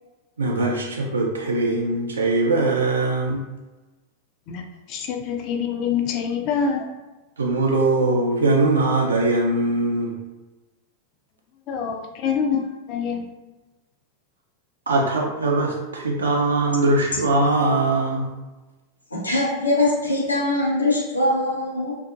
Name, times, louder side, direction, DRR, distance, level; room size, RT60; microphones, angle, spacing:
voice 1, 0.4-3.4 7.4-10.1 14.9-18.3, right 2 dB, 70° right, -1 dB, 0.4 m, -21 dB
voice 2, 4.9-6.9 11.7-13.3, left 6 dB, 40° left, 4 dB, 0.4 m, -25 dB
voice 3, 19.1-21.9, left 1 dB, 80° left, -3 dB, 0.7 m, -22 dB
2.5 x 2.4 x 2.4 m, 1.1 s
figure-of-eight pair, 90°, 0 cm